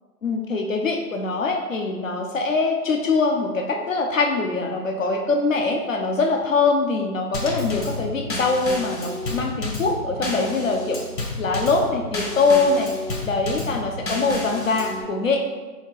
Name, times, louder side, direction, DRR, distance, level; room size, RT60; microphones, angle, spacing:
voice 1, 0.2-11.0 11.4-12.9 13.2-15.4, left 3 dB, 50° left, 2 dB, 0.6 m, -23 dB
Drum kit / Snare drum / Bass drum, 7.3-15.0, left 1 dB, 80° left, 1.3 m, -31 dB
2.9 x 2.8 x 4.4 m, 1.2 s
hypercardioid pair, 175°, 50 cm